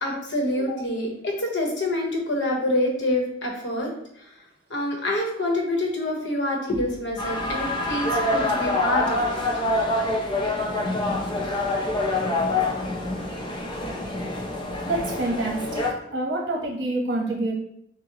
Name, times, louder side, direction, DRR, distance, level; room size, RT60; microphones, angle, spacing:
voice 1, 0.0-3.9 4.2-4.3 4.7-9.4 12.6-12.7, left 1 dB, 75° left, 0 dB, 1.0 m, -26 dB
sound 1, 7.2-15.9, left 2 dB, 25° left, 0.6 m, -26 dB
voice 2, 14.8-15.8 16.1-17.5, right 2 dB, 70° right, -1 dB, 1.1 m, -27 dB
6.1 x 2.1 x 2.9 m, 0.74 s
head